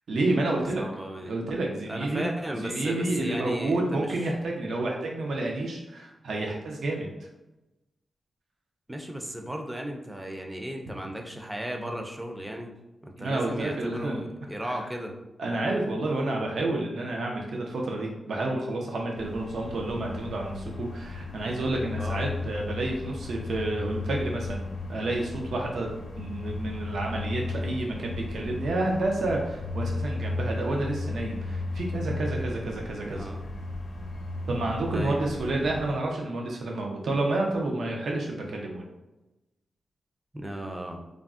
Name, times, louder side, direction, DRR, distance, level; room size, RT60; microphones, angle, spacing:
voice 1, 0.1-0.8 1.2-2.3 2.6-7.1 13.2-14.2 14.6-14.8 15.4-33.3 34.5-38.9, right 2 dB, 80° right, 0 dB, 0.4 m, -30 dB
voice 2, 0.8-1.3 1.9-4.2 8.9-12.7 13.0-15.1 22.0-22.2 33.0-33.4 34.9-35.2 40.3-41.0, equal, 15° right, 3 dB, 0.4 m, -35 dB
sound 1, 19.2-35.9, left 3 dB, 80° left, 0.6 m, -35 dB
3.5 x 2.0 x 2.4 m, 1.0 s
cardioid pair, 85°, 0 cm